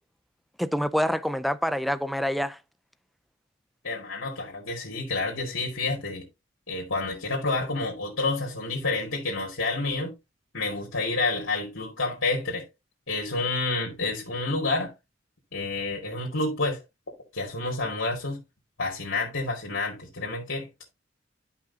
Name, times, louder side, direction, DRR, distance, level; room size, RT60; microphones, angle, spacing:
voice 1, 0.6-2.6, equal, ahead, 0.4 m, -26 dB
voice 2, 3.8-6.3 6.7-10.1 10.5-12.7 13.1-14.9 15.5-16.8 17.3-18.4 18.8-20.7, left 3 dB, 75° left, 2.5 m, -29 dB
11.5 x 5.6 x 2.8 m
head